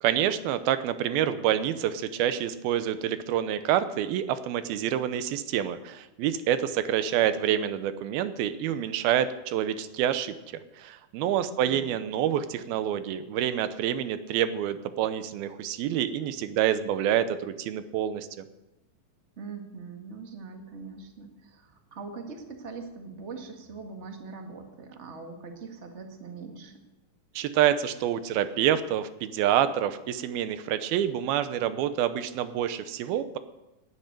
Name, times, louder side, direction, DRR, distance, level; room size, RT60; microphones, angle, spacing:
voice 1, 0.0-10.4 10.8-18.3 27.4-33.4, right 10 dB, 85° right, 12 dB, 2.8 m, -27 dB
voice 2, 11.3-11.9 19.4-26.8, right 4 dB, 45° right, 4 dB, 0.8 m, -42 dB
18.5 x 10.0 x 6.7 m, 0.98 s
omnidirectional pair, 4.2 m